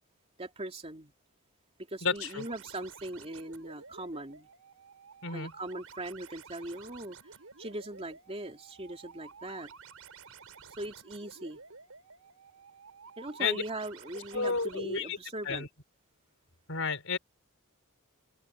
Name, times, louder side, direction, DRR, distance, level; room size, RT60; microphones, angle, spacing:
voice 1, 0.4-1.1 1.8-4.5 5.3-7.2 7.6-9.7 10.8-11.6 13.2-15.7, right 1 dB, 25° right, 2.9 m, -40 dB
voice 2, 2.0-2.4 5.2-5.5 13.4-13.6 14.3-15.2 15.4-15.7 16.7-17.2, left 4 dB, 65° left, 5.4 m, -31 dB
sound 1, 2.2-14.8, right 5 dB, 70° right, 7.3 m, -52 dB
head